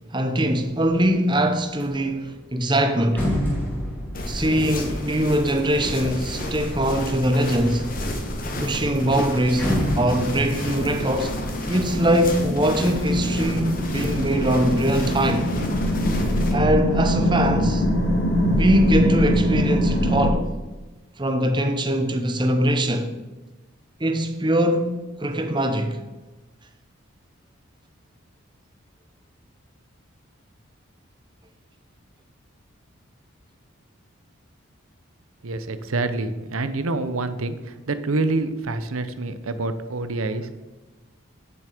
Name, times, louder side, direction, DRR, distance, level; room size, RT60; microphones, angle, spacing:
voice 1, 0.1-3.3 4.2-7.9 8.6-11.3 11.7-15.5 16.5-17.8 18.5-20.5 21.2-23.1 24.0-26.0, equal, 20° right, 0.8 m, -22 dB
sound 1, 0.7-1.1 1.5-6.8 7.4-8.1 8.4-8.5 8.8-12.7 13.1-13.7, equal, 10° left, 2.5 m, -31 dB
sound 2, 4.1-16.5, left 1 dB, 40° left, 1.4 m, -32 dB
sound 3, 5.0-20.3, equal, 75° left, 1.9 m, -25 dB
voice 2, 35.4-37.6 37.9-40.5, right 2 dB, 85° right, 0.8 m, -26 dB
9.6 x 7.0 x 5.0 m
head